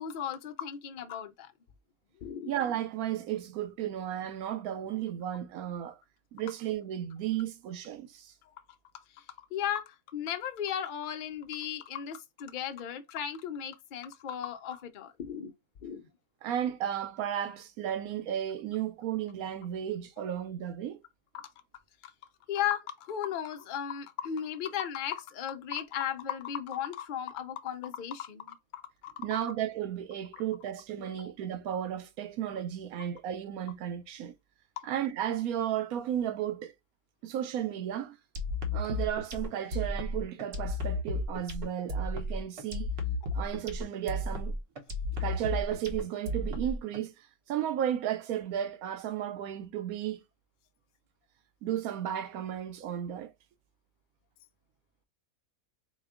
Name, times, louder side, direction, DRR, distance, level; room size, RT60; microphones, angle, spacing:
voice 1, 0.0-1.5 2.2-2.5 8.5-8.6 9.5-15.5 15.8-16.0 21.3-21.5 22.0-22.1 22.5-29.1 31.0-31.3, left 9 dB, 55° left, 0.5 m, -36 dB
voice 2, 2.5-6.0 6.3-8.3 16.4-21.0 29.2-34.3 34.8-36.7 37.2-38.2 38.7-42.9 43.3-44.6 45.2-50.2 51.6-53.3, right 10 dB, 90° right, 1.1 m, -34 dB
sound 1, 38.3-47.0, left 1 dB, 55° right, 0.9 m, -33 dB
4.3 x 2.2 x 3.5 m
omnidirectional pair, 1.5 m